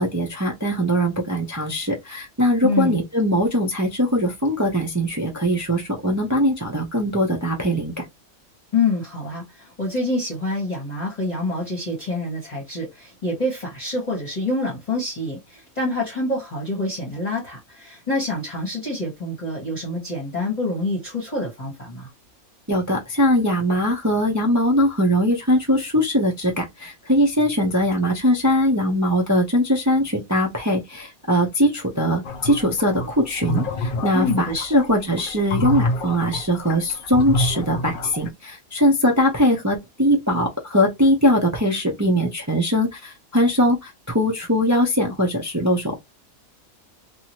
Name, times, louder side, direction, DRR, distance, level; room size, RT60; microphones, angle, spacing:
voice 1, 0.0-8.0 22.7-46.0, equal, 25° right, 0.4 m, -21 dB
voice 2, 2.6-3.0 8.7-22.1 34.1-34.8, left 2 dB, 30° left, 1.2 m, -26 dB
sound 1, 32.2-38.3, left 1 dB, 90° left, 0.4 m, -27 dB
2.8 x 2.6 x 2.9 m
omnidirectional pair, 1.5 m